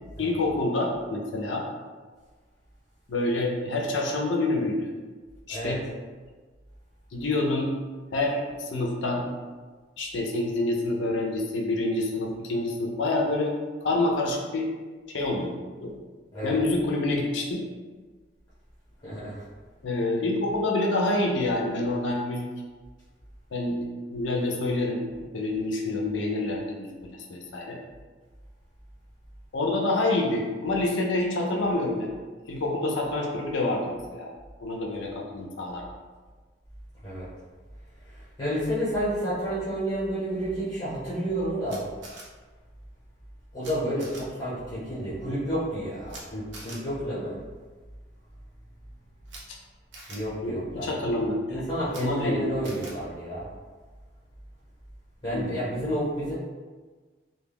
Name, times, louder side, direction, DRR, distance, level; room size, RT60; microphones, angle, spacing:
voice 1, 0.2-1.6 3.1-4.9 5.5-5.8 7.1-7.7 8.1-9.2 10.0-13.5 13.8-14.7 15.1-15.5 15.8-15.9 16.4-17.7 19.8-22.5 23.5-23.9 24.1-25.0 25.3-27.8 29.5-32.1 32.5-34.3 34.6-35.8 49.5-49.6 50.4-52.5 55.3-55.6, left 2 dB, 75° left, 0 dB, 0.5 m, -27 dB
voice 2, 19.0-19.4 37.0-37.3 38.4-41.8 43.5-47.4 50.1-51.0 51.5-53.5 55.2-56.3, equal, 30° left, -11 dB, 0.9 m, -30 dB
Camera, 41.7-42.2 43.6-43.7 44.0-44.2 46.1-46.2 46.5-46.8 49.2-49.4 49.9-50.2 51.8-52.0 52.6-52.9, right 2 dB, 75° right, 0.6 m, -43 dB
2.2 x 2.2 x 3.4 m, 1.4 s
head